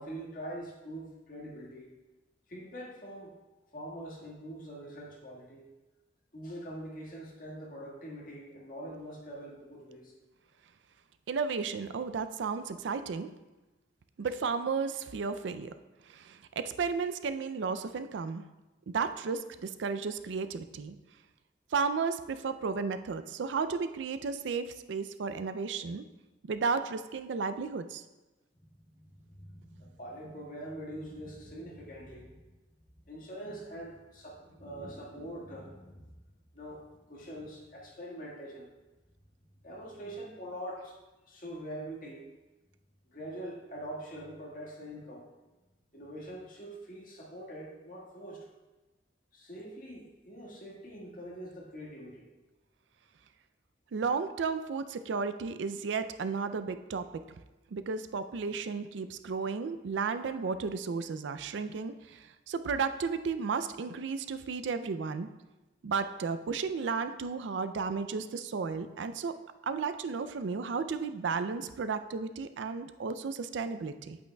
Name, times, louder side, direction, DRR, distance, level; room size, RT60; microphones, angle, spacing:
voice 1, 0.0-1.9 2.5-3.3 3.7-5.7 6.3-10.1 28.6-32.5 33.0-36.1 36.5-38.7 39.6-41.0 41.3-42.2 43.1-45.3 45.9-48.5 49.3-52.3, right 1 dB, 45° left, -3 dB, 1.7 m, -44 dB
voice 2, 11.3-13.3 14.2-15.7 16.1-18.4 18.9-21.0 21.7-26.1 26.4-28.0 53.9-57.2 57.7-65.3 65.8-69.3 69.6-74.2, right 5 dB, 80° right, 11 dB, 0.4 m, -33 dB
8.7 x 8.4 x 2.3 m, 1.1 s
head